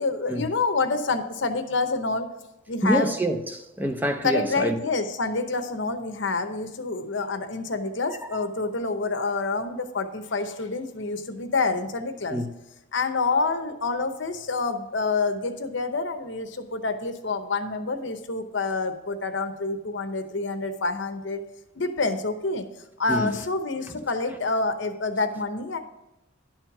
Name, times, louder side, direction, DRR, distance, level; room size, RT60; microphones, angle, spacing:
voice 1, 0.0-2.3 2.7-3.1 4.2-12.4 12.9-21.4 21.7-22.6 23.0-25.8, left 3 dB, 65° left, 0.8 m, -27 dB
voice 2, 2.8-4.8 8.1-8.2 12.3-12.5 23.1-23.4 23.9-24.0, equal, 10° right, 0.5 m, -26 dB
11.0 x 4.4 x 5.9 m
head